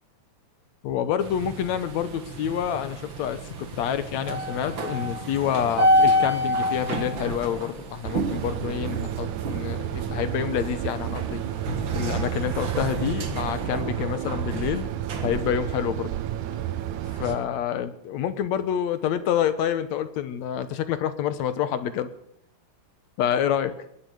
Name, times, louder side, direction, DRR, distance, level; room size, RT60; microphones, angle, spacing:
voice 1, 0.8-11.4 11.9-14.9 15.2-16.1 17.2-22.1 23.2-23.7, left 9 dB, 70° left, 12 dB, 2.2 m, -27 dB
sound 1, 1.2-17.3, equal, 45° right, 2.2 m, -29 dB
sound 2, 8.0-17.4, right 13 dB, 80° right, 2.2 m, -31 dB
21.0 x 8.4 x 8.0 m, 0.74 s
omnidirectional pair, 3.4 m